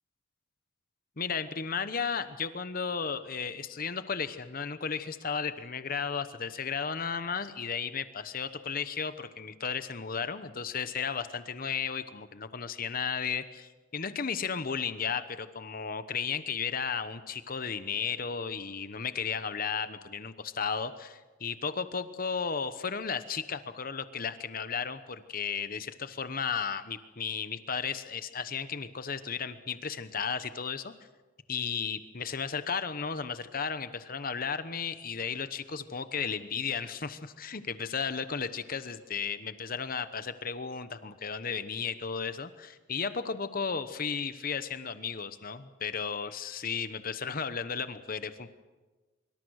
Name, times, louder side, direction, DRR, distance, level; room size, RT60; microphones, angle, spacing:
voice 1, 1.2-30.9 31.5-48.5, left 6 dB, 50° left, 11 dB, 1.0 m, -34 dB
24.5 x 24.0 x 6.4 m, 1.2 s
head